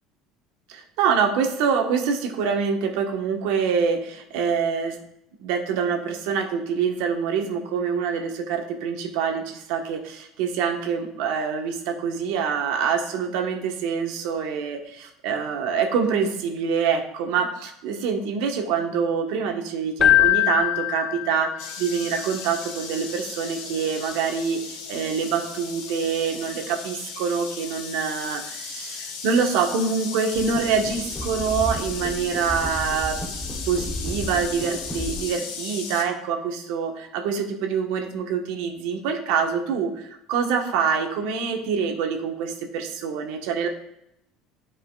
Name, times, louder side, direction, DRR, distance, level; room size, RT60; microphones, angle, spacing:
voice 1, 0.7-5.0 5.4-33.2 33.7-43.7, right 6 dB, 75° right, 4 dB, 1.1 m, -25 dB
Keyboard (musical), 20.0-21.8, left 13 dB, 30° left, 0.3 m, -21 dB
sound 1, 21.6-36.0, left 5 dB, 75° left, 1.1 m, -36 dB
sound 2, 30.3-35.3, left 1 dB, 5° left, 0.8 m, -33 dB
11.0 x 5.0 x 2.3 m, 0.79 s
cardioid pair, 160°, 0 cm